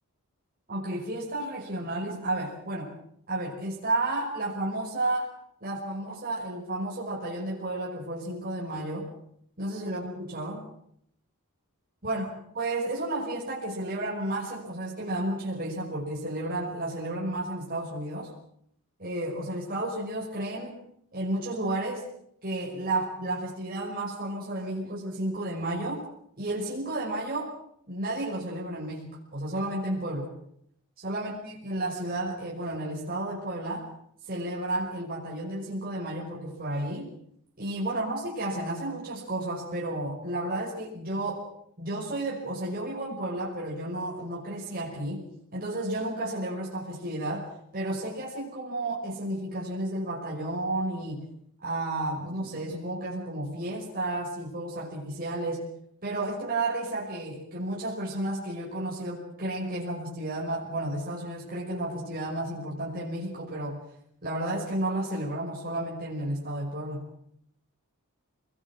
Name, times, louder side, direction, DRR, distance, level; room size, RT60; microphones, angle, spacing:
voice 1, 0.7-2.9 3.3-5.3 5.6-9.1 9.6-10.7 12.0-12.3 12.5-18.3 19.0-20.8 21.1-22.1 22.4-26.0 26.4-27.5 27.9-30.3 31.0-33.9 34.3-37.1 37.6-41.5 41.8-45.2 45.5-47.5 47.7-51.3 51.6-55.6 56.0-63.8 64.2-67.1, right 1 dB, 40° right, -4 dB, 5.7 m, -32 dB
25.5 x 21.0 x 7.5 m, 0.70 s
head